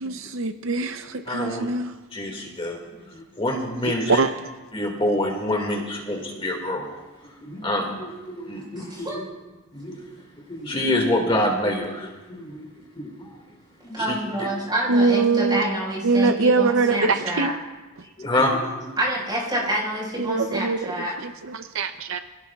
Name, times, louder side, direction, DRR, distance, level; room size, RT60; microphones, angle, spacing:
voice 1, 0.0-1.9 4.1-4.3 14.9-15.6 16.0-17.5 20.2-22.2, right 4 dB, 65° right, 8 dB, 0.6 m, -23 dB
voice 2, 1.3-1.7 2.1-4.2 4.7-7.0 7.2-9.3 9.7-10.0 10.5-12.7 13.0-13.4 13.8-14.5 18.2-19.0, left 1 dB, 25° left, 0 dB, 2.0 m, -27 dB
voice 3, 8.7-9.2 13.9-17.5 19.0-21.1, right 1 dB, 20° right, -4 dB, 5.0 m, -27 dB
26.0 x 17.0 x 2.4 m, 1.2 s
head